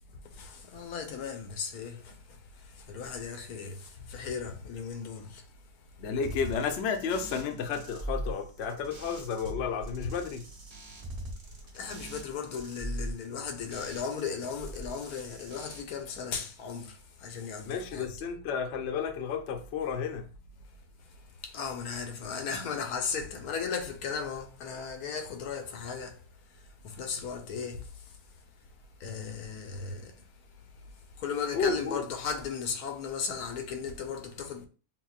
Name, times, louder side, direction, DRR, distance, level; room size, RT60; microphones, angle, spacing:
voice 1, 0.3-5.4 11.7-18.1 21.4-26.2 26.8-28.2 29.0-30.2 31.2-34.7, left 6 dB, 85° left, 1.1 m, -36 dB
voice 2, 6.0-10.5 17.6-20.3 31.5-32.0, left 6 dB, 60° left, 0.7 m, -32 dB
sound 1, 6.2-9.5 9.8-14.3 14.6-15.8, right 1 dB, 30° right, 0.8 m, -41 dB
5.8 x 2.1 x 2.4 m
omnidirectional pair, 1.6 m